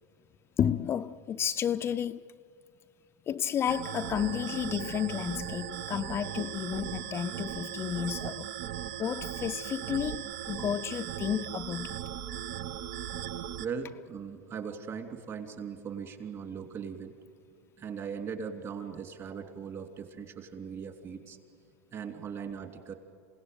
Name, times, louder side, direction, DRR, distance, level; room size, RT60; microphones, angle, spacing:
voice 1, 0.6-2.2 3.3-8.5 9.0-12.0, left 9 dB, 30° left, 0.5 m, -32 dB
sound 1, 3.7-13.7, right 11 dB, 55° right, 0.7 m, -38 dB
voice 2, 13.6-17.1 17.8-21.4 21.9-22.9, right 6 dB, 35° right, 3.1 m, -39 dB
27.5 x 17.5 x 9.4 m
hypercardioid pair, 105°, 8 cm